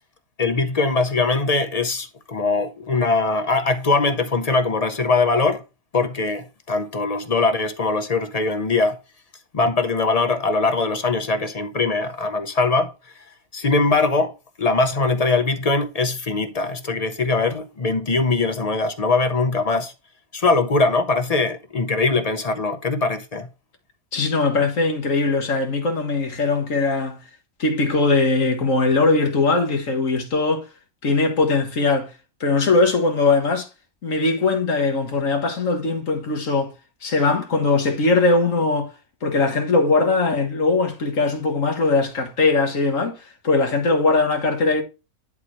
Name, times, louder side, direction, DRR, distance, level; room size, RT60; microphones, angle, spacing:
voice 1, 0.4-5.6 5.9-9.0 9.5-12.9 13.5-14.3 14.6-19.9 20.3-23.5, left 3 dB, 40° left, 0.6 m, -21 dB
voice 2, 24.1-27.2 27.6-30.6 31.0-32.1 32.4-33.7 34.0-36.7 37.0-38.9 39.2-44.8, left 3 dB, 60° left, 1.8 m, -20 dB
10.5 x 4.2 x 3.1 m
omnidirectional pair, 1.5 m